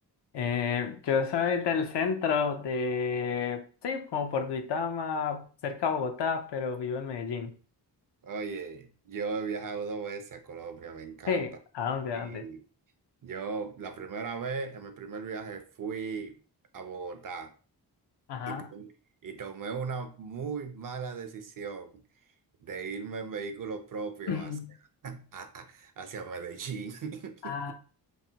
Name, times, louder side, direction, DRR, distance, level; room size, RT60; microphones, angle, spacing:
voice 1, 0.3-7.6 11.3-12.4 18.3-18.7 24.3-24.7 27.4-27.7, left 6 dB, 75° left, 0.6 m, -30 dB
voice 2, 8.2-11.5 12.1-12.6 13.2-16.4 16.7-17.5 18.5-18.9 19.2-22.0 22.6-24.5 25.0-27.6, right 5 dB, 50° right, 0.5 m, -37 dB
3.2 x 2.1 x 2.7 m
cardioid pair, 80°, 42 cm